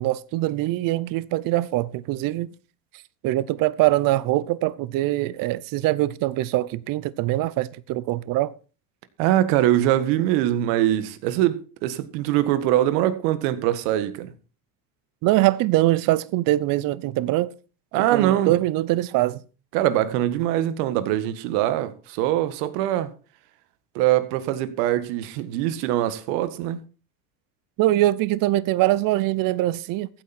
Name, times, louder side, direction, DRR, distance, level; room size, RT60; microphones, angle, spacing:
voice 1, 0.0-2.5 3.2-8.5 15.2-17.5 18.1-19.4 27.8-30.1, right 16 dB, 40° right, 0.8 m, -23 dB
voice 2, 9.2-14.3 17.9-18.5 19.7-23.1 24.0-26.8, right 13 dB, 65° right, 1.7 m, -23 dB
15.0 x 9.0 x 4.3 m
supercardioid pair, 125°, 50 cm